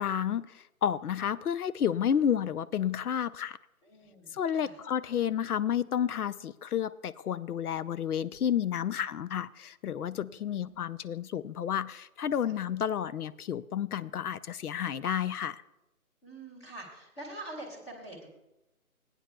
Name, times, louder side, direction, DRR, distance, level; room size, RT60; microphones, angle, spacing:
voice 1, 0.0-3.6 4.3-15.6, left 9 dB, 85° left, 16 dB, 0.6 m, -31 dB
voice 2, 3.8-4.8 8.8-9.0 10.3-10.8 12.4-12.6 16.2-18.3, right 2 dB, 20° left, -3 dB, 1.5 m, -46 dB
19.5 x 9.1 x 2.2 m, 0.92 s
figure-of-eight pair, 165°, 44 cm